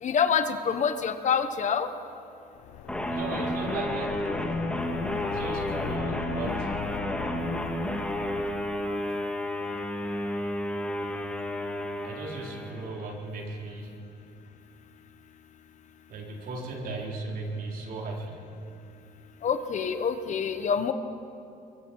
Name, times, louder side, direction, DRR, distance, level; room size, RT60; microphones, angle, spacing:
voice 1, 0.0-1.9 19.4-20.9, left 7 dB, 45° left, 9 dB, 1.2 m, -26 dB
sound 1, 2.6-9.0, left 11 dB, 85° left, 0.7 m, -39 dB
sound 2, 2.9-13.1, left 1 dB, 5° left, 1.8 m, -31 dB
voice 2, 3.1-4.2 5.2-6.7 12.0-13.9 16.1-18.3, right 3 dB, 60° right, -1 dB, 4.4 m, -36 dB
24.5 x 23.0 x 4.8 m, 2.7 s
cardioid pair, 110°, 17 cm